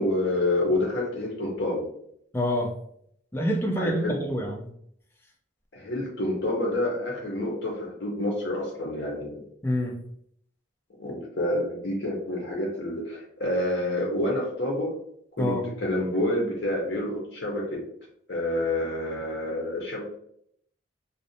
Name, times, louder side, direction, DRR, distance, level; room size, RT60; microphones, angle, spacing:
voice 1, 0.0-1.9 3.8-4.1 5.7-9.4 11.0-14.9 15.4-17.8 18.3-20.0, left 1 dB, 65° left, -1 dB, 0.7 m, -28 dB
voice 2, 2.3-2.7 3.3-4.7 9.6-10.0 15.4-15.6, equal, 10° left, 0 dB, 0.4 m, -26 dB
2.5 x 2.0 x 2.6 m, 0.69 s
head